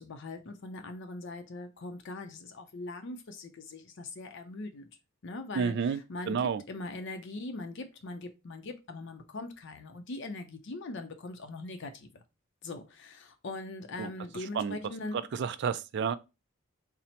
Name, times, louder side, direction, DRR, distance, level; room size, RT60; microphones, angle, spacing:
voice 1, 0.0-4.9 5.2-12.2 12.6-15.3, left 2 dB, 55° left, 0.5 m, -41 dB
voice 2, 5.6-6.0 6.3-6.6 14.0-14.1 14.6-14.8 15.3-16.2, right 6 dB, 55° right, 0.3 m, -30 dB
4.1 x 2.0 x 4.2 m
head